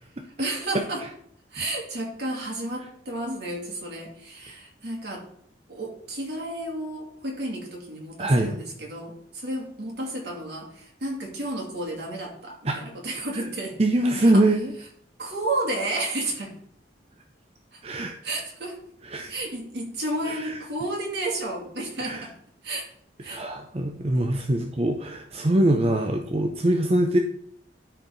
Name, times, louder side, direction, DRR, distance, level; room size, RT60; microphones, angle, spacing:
voice 1, 0.4-1.0 1.5-5.3 5.7-13.8 14.2-14.4 15.2-16.5 17.7-17.8 18.2-18.8 19.3-22.3 22.6-22.9 23.2-23.4, right 1 dB, 65° right, -1 dB, 2.6 m, -32 dB
voice 2, 8.2-8.6 12.6-12.8 13.8-14.7 17.8-18.1 19.0-19.4 20.2-20.6 22.0-22.3 23.3-27.2, right 1 dB, 35° right, 4 dB, 0.6 m, -23 dB
13.0 x 4.5 x 4.0 m, 0.67 s
head